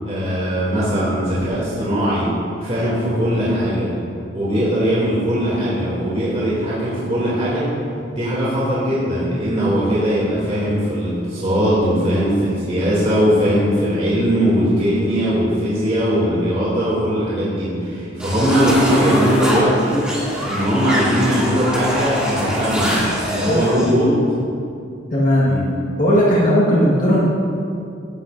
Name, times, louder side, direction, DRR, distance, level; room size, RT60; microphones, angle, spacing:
voice 1, 0.0-2.3 2.6-3.9 4.3-7.6 8.1-20.0 20.4-22.9 23.2-24.1 25.4-25.7, equal, 35° right, -9 dB, 2.7 m, -19 dB
sound 1, 18.2-23.9, equal, 5° right, 2.5 m, -24 dB
voice 2, 25.1-25.5 26.0-27.3, equal, 50° left, -7 dB, 1.7 m, -16 dB
16.5 x 11.0 x 2.6 m, 2.5 s
head